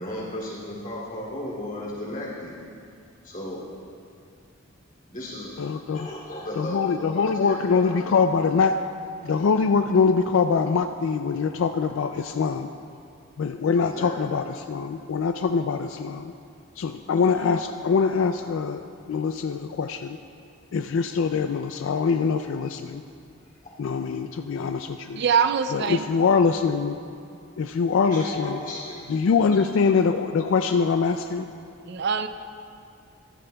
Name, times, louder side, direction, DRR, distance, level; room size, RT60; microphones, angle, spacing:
voice 1, 0.0-2.6 3.2-3.6 5.1-5.6 5.9-7.9 8.3-8.4 13.8-14.1 23.6-23.7 28.0-29.0, left 1 dB, 40° left, -5 dB, 2.7 m, -35 dB
voice 2, 5.6-6.1 6.6-8.8 9.2-12.7 13.4-16.3 16.8-18.8 19.1-20.2 20.7-23.0 23.8-25.2 25.7-27.0 27.6-28.6 29.1-31.5, left 5 dB, 65° left, 7 dB, 0.3 m, -23 dB
voice 3, 25.2-26.0 31.9-32.3, right 6 dB, 55° right, 9 dB, 0.4 m, -23 dB
14.5 x 14.0 x 2.3 m, 2.4 s
head